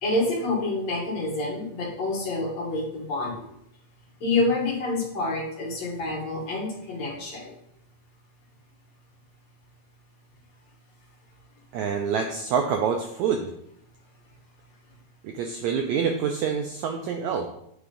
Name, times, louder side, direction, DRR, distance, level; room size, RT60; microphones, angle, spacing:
voice 1, 0.0-3.5 4.2-7.5, left 2 dB, 55° left, -2 dB, 2.6 m, -27 dB
voice 2, 11.7-13.5 15.2-17.5, right 6 dB, 80° right, 4 dB, 1.6 m, -26 dB
8.8 x 3.6 x 5.1 m, 0.75 s
omnidirectional pair, 3.9 m